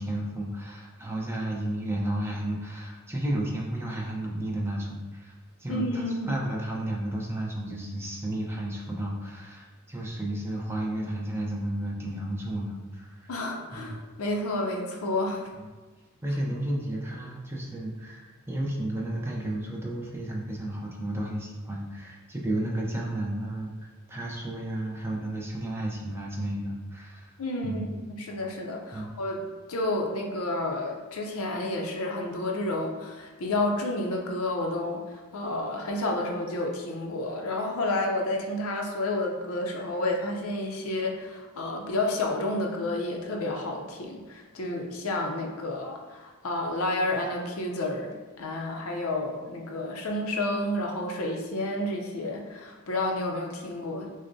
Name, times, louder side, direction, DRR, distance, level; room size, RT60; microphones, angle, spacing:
voice 1, 0.0-5.3 5.6-13.3 13.7-14.0 16.2-27.3 27.6-27.9 28.9-29.1, right 1 dB, 10° right, -2 dB, 0.5 m, -32 dB
voice 2, 5.7-6.3 13.3-15.4 27.4-29.4 29.7-54.1, left 2 dB, 70° left, 1 dB, 0.6 m, -30 dB
6.2 x 2.1 x 2.6 m, 1.3 s
head